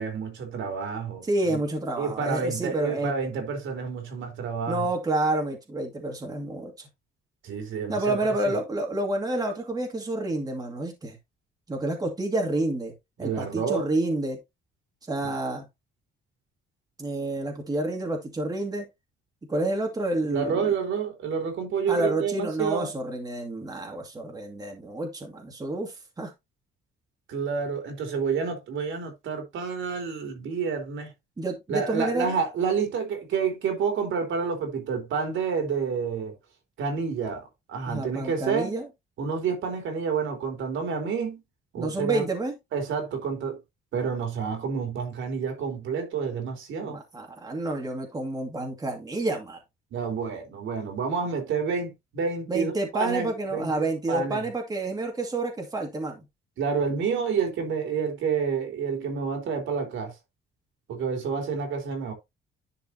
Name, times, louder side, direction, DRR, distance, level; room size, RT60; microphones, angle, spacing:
voice 1, 0.0-1.6 2.0-4.9 7.4-8.2 8.4-8.6 13.2-13.9 15.2-15.3 20.3-22.9 27.3-31.1 31.7-36.3 36.8-37.4 37.7-38.8 39.2-41.4 41.7-42.2 42.7-43.6 43.9-47.0 49.9-54.5 56.6-60.1 60.9-62.1, right 6 dB, 75° right, 3.7 m, -29 dB
voice 2, 1.2-3.1 4.7-6.9 7.9-11.2 11.7-12.9 13.2-14.4 15.1-15.7 17.0-18.9 19.5-20.6 21.9-26.3 31.4-32.3 37.9-38.9 41.8-42.5 46.8-49.6 52.5-56.2, right 2 dB, 20° right, 2.3 m, -29 dB
11.0 x 5.4 x 2.9 m
cardioid pair, 140°, 20 cm